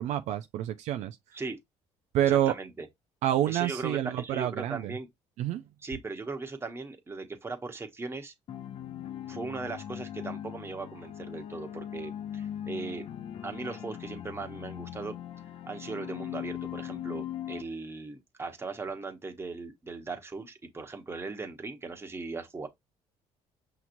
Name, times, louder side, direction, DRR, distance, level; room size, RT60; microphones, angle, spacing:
voice 1, 0.0-1.2 2.1-2.5 3.2-4.9 5.4-5.6, right 12 dB, 70° right, 0.4 m, -28 dB
voice 2, 2.2-2.9 3.5-5.1 5.8-8.3 9.3-13.1 13.4-15.2 15.7-22.7, right 3 dB, 20° right, 1.0 m, -38 dB
sound 1, 8.5-17.6, left 10 dB, 55° left, 0.6 m, -40 dB
5.7 x 2.9 x 2.6 m
cardioid pair, 90°, 12 cm